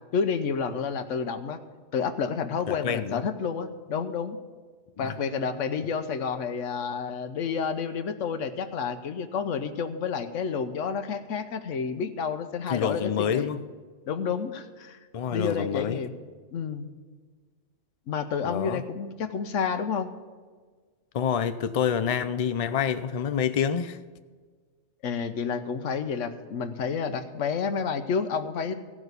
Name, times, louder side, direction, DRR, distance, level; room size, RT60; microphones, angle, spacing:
voice 1, 0.1-1.6 1.9-4.4 5.0-13.5 14.1-15.0 15.3-16.2 16.5-16.9 18.1-20.1 25.0-28.7, left 6 dB, 80° left, 9 dB, 1.2 m, -30 dB
voice 2, 2.7-3.2 5.0-5.1 12.7-13.6 15.1-16.0 18.4-18.8 21.1-24.0, left 8 dB, 50° left, 12 dB, 0.4 m, -27 dB
15.5 x 6.1 x 8.1 m, 1.5 s
omnidirectional pair, 1.3 m